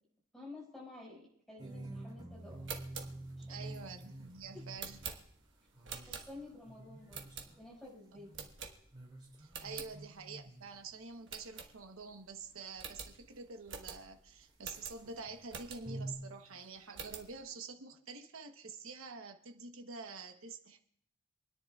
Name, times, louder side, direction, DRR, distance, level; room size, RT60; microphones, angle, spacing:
voice 1, 0.3-2.7 3.4-3.8 4.5-4.7 6.1-7.3 7.6-8.3, left 2 dB, ahead, -4 dB, 5.5 m, -51 dB
sound 1, 1.6-8.6 8.9-12.8 13.1-16.1, right 1 dB, 20° right, 2.7 m, -49 dB
sound 2, 2.5-6.6 7.1-7.8 8.3-9.1 9.4-9.9 10.4-10.5 10.7-10.8 11.3-12.2 12.4-12.5 12.8-16.1 16.5-17.3, right 6 dB, 60° right, 1.4 m, -47 dB
voice 2, 3.5-5.0 5.9-6.2 9.4-20.8, right 4 dB, 80° right, 5 dB, 1.0 m, -48 dB
27.5 x 10.0 x 2.4 m, 0.67 s
head